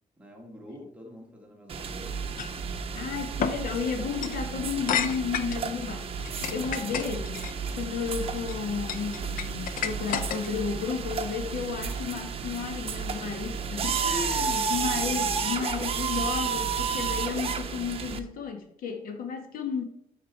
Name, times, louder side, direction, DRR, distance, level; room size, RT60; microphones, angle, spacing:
voice 1, 0.2-2.3 14.3-14.6, left 1 dB, 10° right, 1.6 m, -47 dB
sound 1, 1.7-18.2, right 6 dB, 40° right, 0.8 m, -32 dB
sound 2, 2.4-2.6 3.4-3.6 4.1-4.4 4.9-5.6 6.2-7.5 8.2-8.5 8.9-10.7, left 7 dB, 70° left, 0.7 m, -31 dB
voice 2, 2.9-19.8, left 6 dB, 85° left, 1.6 m, -33 dB
13.5 x 5.0 x 4.6 m
wide cardioid pair, 165°, 15 cm